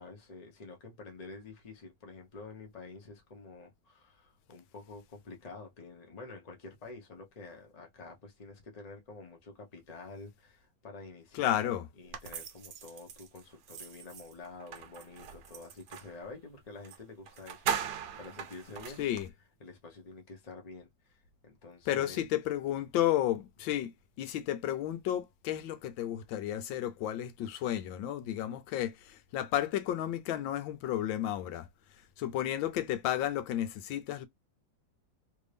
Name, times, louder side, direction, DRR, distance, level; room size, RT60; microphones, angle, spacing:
voice 1, 0.0-11.7 12.0-17.9 18.2-19.0 19.6-22.2, left 3 dB, 30° left, 0.8 m, -48 dB
voice 2, 11.3-11.8 19.0-19.3 21.9-23.9 24.2-31.7 32.2-34.3, left 12 dB, 90° left, 1.4 m, -32 dB
sound 1, 12.1-16.2 16.8-17.0 17.3-19.3, right 8 dB, 65° right, 1.2 m, -40 dB
3.3 x 2.6 x 3.3 m
omnidirectional pair, 2.1 m